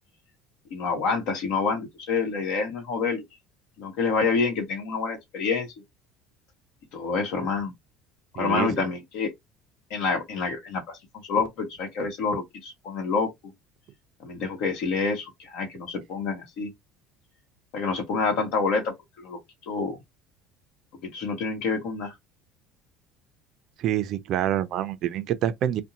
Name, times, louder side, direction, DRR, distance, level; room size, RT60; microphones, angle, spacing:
voice 1, 0.7-3.2 3.8-5.7 6.9-7.7 8.3-9.3 9.9-11.0 11.3-13.5 14.2-16.7 17.7-19.4 19.7-20.0 21.0-22.1, left 4 dB, 70° left, 1.0 m, -27 dB
voice 2, 8.4-8.9 23.8-25.8, right 11 dB, 50° right, 0.4 m, -27 dB
2.6 x 2.1 x 2.7 m
cardioid pair, 150°, 0 cm